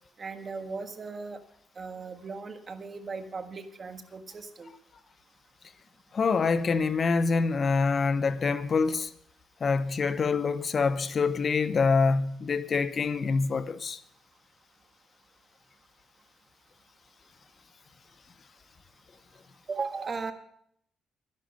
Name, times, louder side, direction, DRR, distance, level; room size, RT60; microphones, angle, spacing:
voice 1, 0.2-1.4 1.8-4.7 19.7-20.3, right 4 dB, 40° right, 1.5 m, -37 dB
voice 2, 6.1-9.1 9.6-14.0, left 4 dB, 45° left, 0.7 m, -26 dB
11.5 x 11.0 x 5.3 m
cardioid pair, 90°, 0 cm